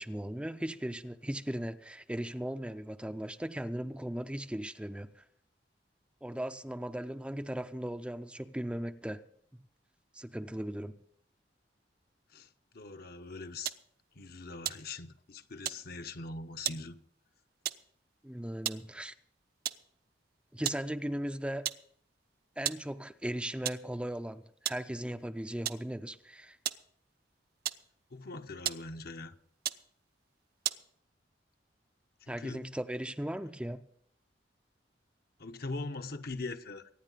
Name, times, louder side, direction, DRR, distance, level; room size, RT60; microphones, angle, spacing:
voice 1, 0.0-5.2 6.2-9.2 9.5-9.6 10.1-10.9 18.2-19.1 20.5-21.7 22.6-26.6 32.3-33.9, right 1 dB, 5° right, 0.5 m, -37 dB
voice 2, 12.7-13.7 14.2-17.0 28.1-29.3 32.3-32.7 35.4-36.9, left 3 dB, 60° left, 1.0 m, -41 dB
sound 1, 13.7-13.9 14.6-15.3 15.6-15.9 16.7-16.9 17.7-17.9 18.5-18.9 19.7-19.9 20.7-20.9 21.2-21.3 21.7-22.0 22.7-22.9 23.7-23.9 24.7-24.9 25.7-25.9 26.7-26.9 27.6-28.2 28.7-29.0 29.6-29.9 30.6-30.9, right 11 dB, 60° right, 0.7 m, -36 dB
24.0 x 10.0 x 4.0 m
head